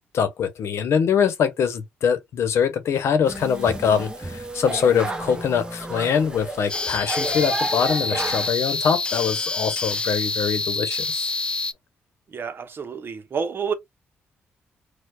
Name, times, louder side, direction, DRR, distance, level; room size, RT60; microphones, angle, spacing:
voice 1, 0.1-11.3, left 7 dB, 70° left, 0.8 m, -23 dB
sound 1, 3.2-8.5, right 1 dB, 15° right, 1.0 m, -31 dB
sound 2, 6.7-11.7, left 3 dB, 20° left, 0.4 m, -27 dB
voice 2, 12.3-13.7, right 6 dB, 50° right, 0.8 m, -29 dB
4.5 x 2.3 x 2.3 m
supercardioid pair, 60°, 5 cm